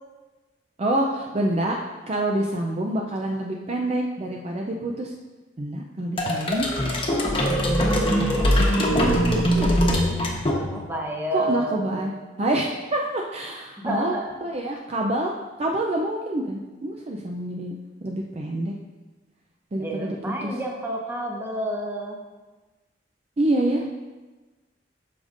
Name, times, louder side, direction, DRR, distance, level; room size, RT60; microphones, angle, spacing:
voice 1, 0.8-1.8 2.1-5.1 5.6-6.7 7.6-9.8 11.3-12.1 12.4-14.2 14.4-15.3 15.6-17.8 18.0-18.7 19.7-20.2 20.4-20.5 23.4-24.0, right 1 dB, 35° right, 0 dB, 0.5 m, -27 dB
sound 1, 6.2-11.0, equal, 30° left, 1.1 m, -22 dB
voice 2, 10.7-12.1 13.8-14.3 19.8-22.2, right 1 dB, 15° right, -1 dB, 1.0 m, -29 dB
12.5 x 5.0 x 2.6 m, 1.2 s
head